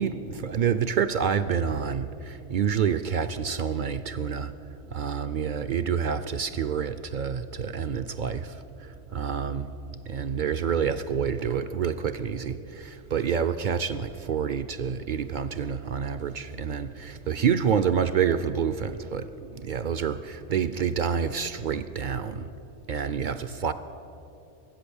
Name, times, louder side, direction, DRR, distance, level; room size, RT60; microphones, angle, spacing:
voice 1, 0.4-4.5 4.9-8.5 9.1-9.7 10.1-19.3 19.6-22.5 22.9-23.7, right 7 dB, 65° right, 12 dB, 0.5 m, -28 dB
21.0 x 8.6 x 7.1 m, 2.8 s
omnidirectional pair, 1.3 m